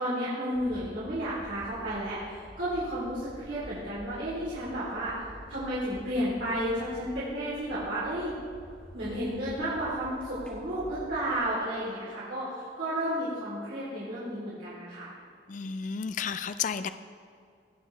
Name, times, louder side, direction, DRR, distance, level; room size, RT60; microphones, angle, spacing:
voice 1, 0.0-5.2 5.5-8.3 8.9-15.1, equal, 75° right, -10 dB, 3.0 m, -32 dB
sound 1, 0.5-11.4, equal, 10° left, 2.1 m, -49 dB
voice 2, 15.5-16.9, left 6 dB, 45° left, 11 dB, 0.3 m, -32 dB
17.5 x 7.2 x 3.2 m, 2.3 s
head